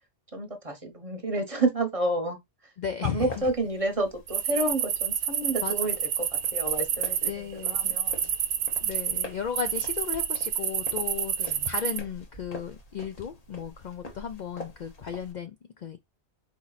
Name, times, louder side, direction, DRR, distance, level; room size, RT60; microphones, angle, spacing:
voice 1, 0.3-2.4 2.6-2.7 3.0-8.3 11.4-11.7, right 2 dB, 35° right, 0.9 m, -30 dB
voice 2, 2.8-3.3 5.6-6.0 7.3-8.0 8.8-16.0, left 7 dB, 60° left, 0.5 m, -35 dB
sound 1, 3.2-15.3, left 1 dB, 35° left, 1.0 m, -46 dB
sound 2, 4.3-7.3 7.6-9.2 9.6-12.0, right 9 dB, 75° right, 0.9 m, -28 dB
4.2 x 2.9 x 3.9 m
omnidirectional pair, 1.2 m